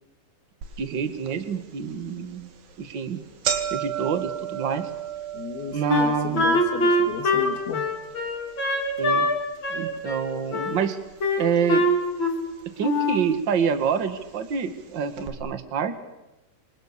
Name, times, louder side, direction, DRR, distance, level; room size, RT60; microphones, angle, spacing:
sound 1, 0.6-0.7 1.3-1.4 2.2-2.4 2.7-2.8 3.1-11.3 11.5-12.3 13.1-13.2 14.1-14.2 14.5-14.6 15.2-15.3, right 9 dB, 65° right, 3.7 m, -35 dB
voice 1, 0.8-2.5 2.8-3.2 3.7-4.9 5.7-6.4 9.0-9.3 9.7-11.0 11.4-11.8 12.8-16.0, right 7 dB, 45° right, 9 dB, 1.5 m, -27 dB
voice 2, 5.3-7.9, left 7 dB, 80° left, 5 dB, 3.8 m, -34 dB
Wind instrument woodwind instrument, 5.9-9.4 9.6-10.8 11.2-12.5 12.8-13.3, left 1 dB, 30° left, 3.7 m, -23 dB
27.0 x 26.5 x 6.7 m, 0.97 s
omnidirectional pair, 4.4 m